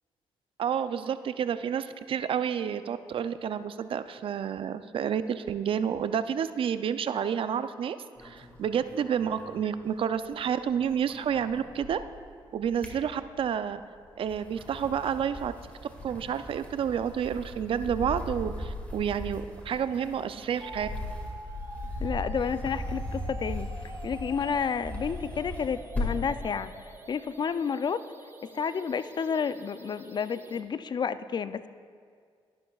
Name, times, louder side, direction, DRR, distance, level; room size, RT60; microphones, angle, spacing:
voice 1, 0.6-8.0 8.2-12.0 12.5-13.8 14.2-15.5 16.0-20.9, right 8 dB, 60° right, 12 dB, 0.4 m, -30 dB
sound 1, 8.2-10.3 10.6-12.2 12.6-13.6 14.1-26.4, left 1 dB, 15° left, 1.9 m, -38 dB
sound 2, 20.6-30.6, right 2 dB, 25° right, 0.8 m, -46 dB
voice 2, 22.0-23.7 24.0-26.7 27.1-28.0 28.5-31.7, left 6 dB, 45° left, 14 dB, 0.4 m, -30 dB
12.0 x 11.0 x 2.3 m, 2.1 s
cardioid pair, 70°, 10 cm